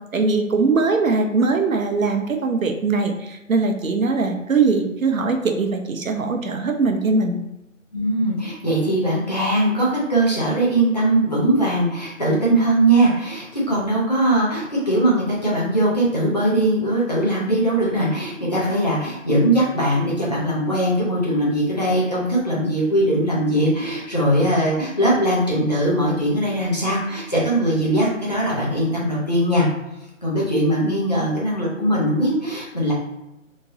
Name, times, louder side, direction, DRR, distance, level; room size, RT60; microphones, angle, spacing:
voice 1, 0.1-7.4, right 4 dB, 75° right, 4 dB, 0.7 m, -21 dB
voice 2, 7.9-29.7 30.2-32.9, right 1 dB, 30° left, -6 dB, 0.7 m, -20 dB
2.9 x 2.5 x 2.7 m, 0.93 s
figure-of-eight pair, 170°, 40 cm